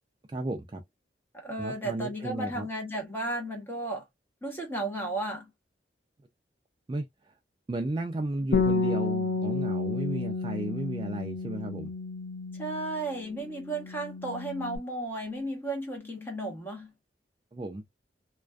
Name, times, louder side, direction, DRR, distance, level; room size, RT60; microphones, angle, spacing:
voice 1, 0.3-0.8 1.6-2.7 6.9-7.3 7.7-11.9 17.5-17.8, right 1 dB, 25° right, 0.3 m, -34 dB
voice 2, 1.3-4.0 4.4-5.5 12.6-16.9, right 2 dB, 10° left, 0.9 m, -34 dB
Bass guitar, 8.5-13.2 13.5-14.8, left 3 dB, 45° left, 0.4 m, -31 dB
2.4 x 2.2 x 2.2 m
head